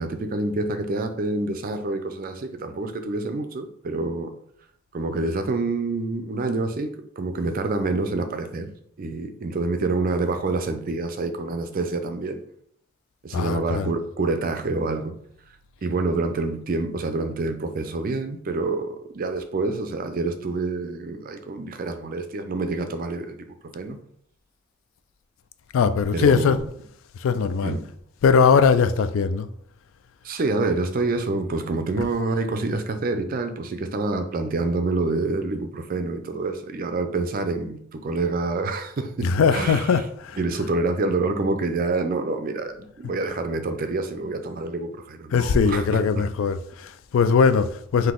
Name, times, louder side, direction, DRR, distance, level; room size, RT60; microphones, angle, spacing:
voice 1, 0.0-4.3 4.9-6.9 7.2-8.7 9.0-12.4 13.2-15.1 15.8-23.5 23.7-24.0 26.1-26.7 27.6-27.8 30.2-40.0 40.4-46.2, right 3 dB, 40° right, 0.4 m, -27 dB
voice 2, 13.3-13.9 25.7-26.6 27.2-27.8 28.2-29.5 39.2-40.4 45.3-48.1, left 5 dB, 65° left, 0.3 m, -20 dB
3.9 x 2.7 x 3.7 m
head